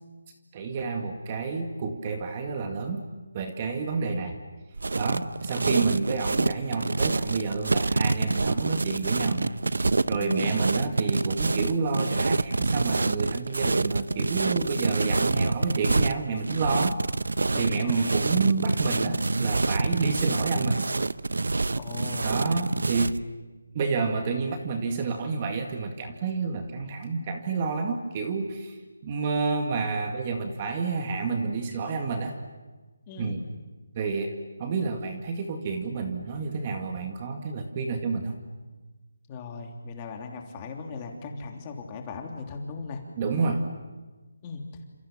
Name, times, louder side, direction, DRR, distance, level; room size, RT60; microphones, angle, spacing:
voice 1, 0.5-3.1 3.3-4.4 4.9-9.5 10.1-17.0 17.6-20.8 22.2-23.2 23.7-28.8 29.0-32.3 33.2-33.4 34.0-34.3 34.6-38.3 43.2-43.6, right 4 dB, 25° right, 5 dB, 2.0 m, -29 dB
sound 1, 4.8-23.2, right 3 dB, 85° right, 1.0 m, -26 dB
voice 2, 10.2-10.6 17.5-18.2 21.7-22.3 33.1-33.4 39.3-43.0 44.4-44.6, left 4 dB, 20° left, 2 dB, 3.2 m, -38 dB
29.5 x 27.5 x 7.3 m, 1.2 s
hypercardioid pair, 170°, 0 cm